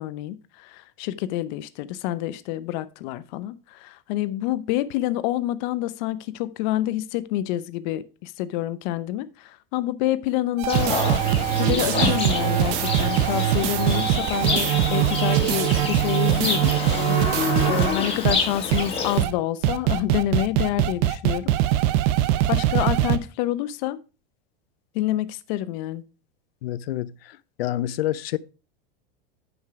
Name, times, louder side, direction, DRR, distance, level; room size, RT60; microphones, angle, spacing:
voice 1, 0.0-11.1 11.6-16.7 17.1-21.5 22.5-24.0 24.9-26.0, left 14 dB, 50° left, 0.8 m, -28 dB
sound 1, 10.6-17.9 18.2-18.4 18.7-18.8 19.2-19.3 19.6-23.2, right 13 dB, 50° right, 0.8 m, -22 dB
Livestock farm animals working animals, 10.7-19.2, left 4 dB, 20° left, 2.2 m, -27 dB
voice 2, 26.6-28.4, left 13 dB, 85° left, 0.7 m, -28 dB
9.5 x 5.5 x 4.7 m
supercardioid pair, 145°, 29 cm